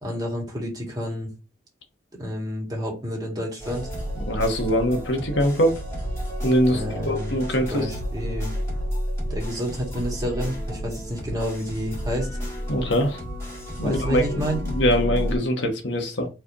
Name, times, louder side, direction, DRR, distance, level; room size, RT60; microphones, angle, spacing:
voice 1, 0.0-1.3 2.2-3.9 6.7-8.5 9.3-12.3 13.8-14.6, equal, 20° right, -2 dB, 1.8 m, -29 dB
sound 1, 3.6-15.4, equal, 15° left, 1.6 m, -31 dB
voice 2, 4.2-5.8 6.4-7.9 12.7-13.2 13.8-16.3, equal, 80° left, 3 dB, 1.1 m, -23 dB
4.7 x 3.4 x 2.9 m, 0.30 s
head